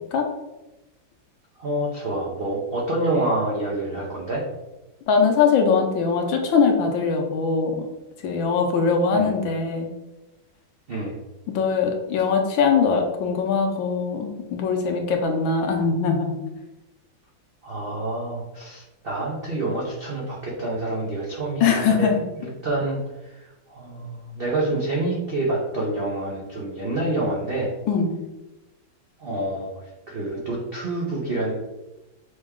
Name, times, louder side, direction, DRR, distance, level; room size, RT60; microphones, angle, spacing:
voice 1, 1.6-4.4 9.1-9.3 10.9-11.2 17.6-27.7 29.2-29.7 30.1-31.5, right 2 dB, 90° right, -4 dB, 0.5 m, -27 dB
voice 2, 5.1-7.9 8.2-9.9 11.5-16.4 21.6-22.2 27.9-28.1, left 5 dB, 75° left, 3 dB, 1.5 m, -21 dB
6.1 x 2.2 x 3.6 m, 1.0 s
omnidirectional pair, 2.2 m